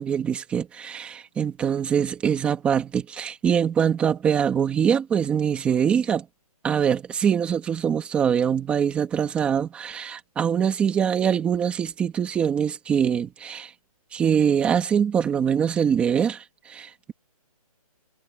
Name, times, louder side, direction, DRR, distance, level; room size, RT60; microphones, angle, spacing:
voice 1, 0.0-6.3 6.6-13.7 14.1-17.1, right 8 dB, 5° right, 2.1 m, -23 dB
hypercardioid pair, 175°, 20 cm